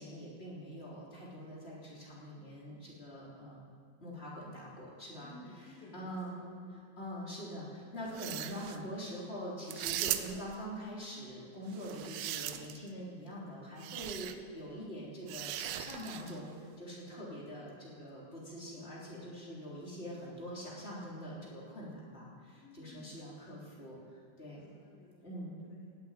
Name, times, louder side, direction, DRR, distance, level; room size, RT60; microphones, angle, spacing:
voice 1, 0.0-3.7 4.0-6.4 7.0-24.6 25.2-25.6, equal, 15° left, -6 dB, 3.1 m, -44 dB
voice 2, 5.2-6.8 22.6-23.3 24.5-25.5 25.8-26.0, left 2 dB, 60° left, -3 dB, 3.0 m, -56 dB
sound 1, 8.1-8.8 9.7-10.6 11.7-12.9 13.8-14.4 15.3-16.4, right 13 dB, 90° right, 3.2 m, -38 dB
18.5 x 8.6 x 9.0 m, 2.1 s
omnidirectional pair, 5.4 m